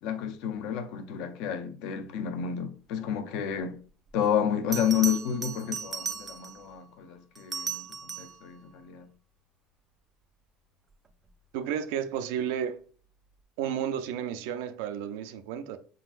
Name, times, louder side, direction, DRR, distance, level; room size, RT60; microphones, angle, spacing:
voice 1, 0.0-3.8 4.1-9.1, left 8 dB, 55° left, 0.6 m, -30 dB
Bell, 4.1-4.2 4.7-6.7 7.3-8.4 11.1-11.4, right 6 dB, 15° right, 0.3 m, -36 dB
voice 2, 11.5-12.8 13.6-15.8, right 9 dB, 75° right, 0.5 m, -32 dB
5.1 x 3.8 x 2.5 m
cardioid pair, 165°, 0 cm